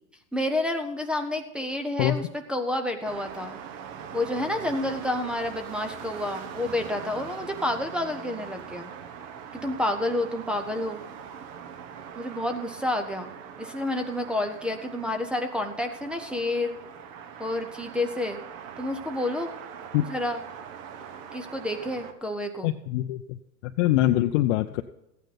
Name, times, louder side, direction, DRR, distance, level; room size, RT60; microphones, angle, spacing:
voice 1, 0.3-3.6 4.1-8.9 9.5-11.0 12.1-13.3 13.6-16.8 17.4-18.4 18.8-19.5 20.1-20.4 21.3-22.7, left 1 dB, ahead, 2 dB, 0.4 m, -29 dB
sound 1, 3.0-22.1, right 7 dB, 50° right, 1.2 m, -42 dB
voice 2, 22.6-23.4 23.6-24.8, left 14 dB, 45° left, 6 dB, 0.6 m, -24 dB
14.5 x 9.1 x 4.0 m, 0.85 s
hypercardioid pair, 125°, 49 cm